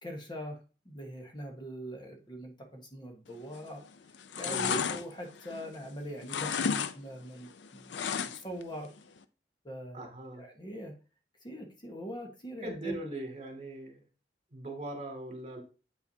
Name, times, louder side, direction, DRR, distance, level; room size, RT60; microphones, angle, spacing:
voice 1, 0.0-3.9 4.4-8.9 9.6-10.9 11.4-12.9, equal, 25° left, 2 dB, 1.3 m, -42 dB
sound 1, 3.5-3.8 4.1-5.9 6.2-6.9 7.2-8.6 9.0-9.1, left 6 dB, 80° left, 0.5 m, -33 dB
voice 2, 4.5-4.9 9.9-10.4 12.6-14.0 14.5-15.6, right 1 dB, 40° right, 3 dB, 2.1 m, -40 dB
8.3 x 5.7 x 2.7 m, 0.34 s
head